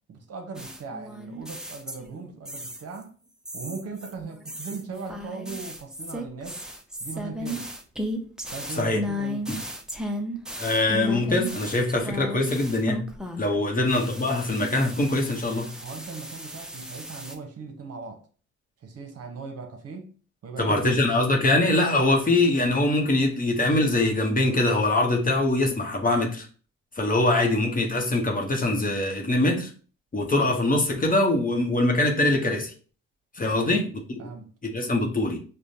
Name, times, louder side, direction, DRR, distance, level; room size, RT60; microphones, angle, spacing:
voice 1, 0.1-3.1 3.5-6.6 7.0-7.7 8.5-9.4 13.6-13.7 15.8-18.2 18.8-20.1 20.4-21.0 33.4-33.8 34.2-34.5, right 4 dB, 55° right, 0.9 m, -38 dB
sound 1, 0.5-2.2 2.4-3.0 3.4-13.5 13.9-17.3, equal, ahead, 0.5 m, -35 dB
voice 2, 10.6-13.1 13.4-15.7 20.6-26.5 27.0-29.7 30.1-32.7 33.3-34.0 34.6-35.4, left 2 dB, 30° left, 0.9 m, -23 dB
4.9 x 2.2 x 2.7 m
cardioid pair, 90°, 30 cm